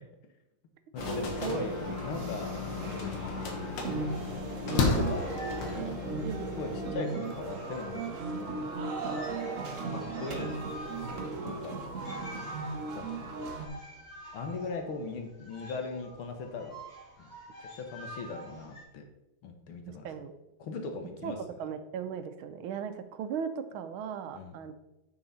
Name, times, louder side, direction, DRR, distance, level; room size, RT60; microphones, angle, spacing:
voice 1, 0.9-2.5 2.9-3.4 4.7-5.3 6.5-8.6 9.9-10.6 11.0-11.8 12.9-13.3 14.3-16.8 17.2-17.3 17.6-19.0 19.4-20.1 20.6-21.4 24.3-24.5, left 4 dB, 85° left, 4 dB, 1.9 m, -39 dB
sound 1, 1.0-6.9, left 4 dB, 65° left, 1.8 m, -34 dB
sound 2, 1.0-13.7, right 3 dB, 50° right, 1.0 m, -37 dB
sound 3, 4.7-8.4 8.7-8.8 9.0-18.8, right 1 dB, 40° left, 2.8 m, -47 dB
voice 2, 6.2-6.9 19.9-20.3 21.2-21.3 21.6-24.7, right 7 dB, 80° right, 9 dB, 1.5 m, -37 dB
9.7 x 4.8 x 4.1 m, 0.94 s
omnidirectional pair, 2.3 m